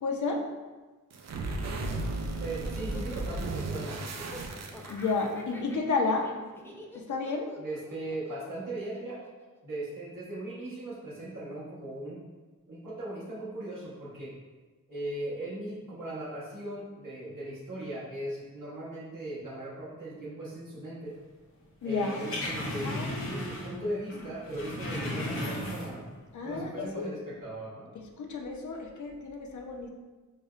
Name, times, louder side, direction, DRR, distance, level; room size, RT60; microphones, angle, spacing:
voice 1, 0.0-0.4 4.9-6.3 6.9-7.5 21.8-22.2 22.8-23.7 26.3-27.1 28.2-29.9, left 4 dB, 65° left, 2 dB, 0.5 m, -32 dB
sound 1, 1.1-5.3, right 2 dB, 55° right, 0.4 m, -34 dB
Laughter, 1.8-10.1, left 1 dB, 10° left, 0.3 m, -49 dB
voice 2, 2.4-4.1 7.6-9.2 9.6-12.2 12.7-14.3 14.9-21.2 21.8-26.1 26.4-27.9, right 1 dB, 80° right, -9 dB, 1.1 m, -38 dB
sound 2, 21.9-23.8 24.1-26.1 26.5-26.6, left 1 dB, 45° left, 0.8 m, -35 dB
5.2 x 2.1 x 2.3 m, 1.3 s
wide cardioid pair, 90°, 31 cm